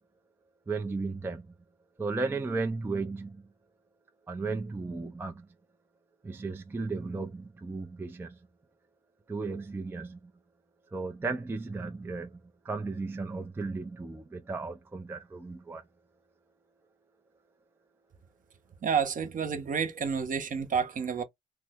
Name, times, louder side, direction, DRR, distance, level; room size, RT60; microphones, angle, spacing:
voice 1, 0.7-1.5 2.0-3.4 4.3-5.5 6.2-8.4 9.3-10.2 10.9-12.4 12.6-15.8, right 3 dB, 10° right, 0.4 m, -35 dB
voice 2, 18.8-21.2, right 6 dB, 40° right, 0.7 m, -29 dB
3.2 x 2.0 x 3.4 m
cardioid pair, 90°, 20 cm